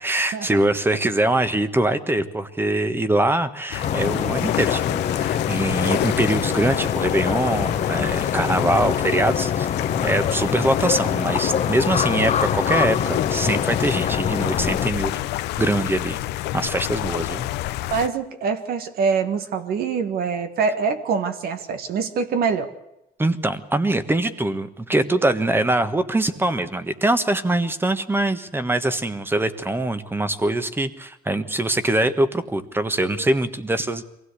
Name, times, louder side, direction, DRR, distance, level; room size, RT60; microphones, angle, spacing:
voice 1, 0.0-15.2 15.6-16.2 16.5-17.5 23.2-34.1, right 1 dB, 15° right, 12 dB, 1.4 m, -23 dB
sound 1, 3.7-18.1, left 15 dB, 85° left, 0.9 m, -29 dB
sound 2, 3.8-14.9, left 8 dB, 45° left, 1.1 m, -25 dB
voice 2, 17.9-22.7, right 5 dB, 65° right, 9 dB, 1.6 m, -24 dB
23.5 x 16.0 x 8.3 m, 0.89 s
cardioid pair, 110°, 17 cm